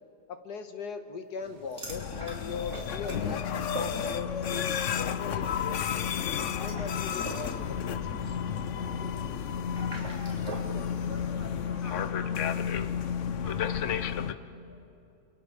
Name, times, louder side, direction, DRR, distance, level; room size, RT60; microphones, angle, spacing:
voice 1, 0.3-6.1 6.6-8.4, left 5 dB, 90° left, 7 dB, 1.9 m, -40 dB
sound 1, 1.4-13.1, right 2 dB, 90° right, 3.0 m, -57 dB
sound 2, 1.7-4.6 4.9-5.2 6.4-10.7, right 2 dB, 45° right, 4.3 m, -43 dB
sound 3, 1.9-14.3, left 8 dB, 55° left, 1.0 m, -32 dB
voice 2, 11.0-12.4 13.0-14.9, equal, 10° right, -2 dB, 3.9 m, -48 dB
30.0 x 27.5 x 5.0 m, 2.4 s
omnidirectional pair, 1.7 m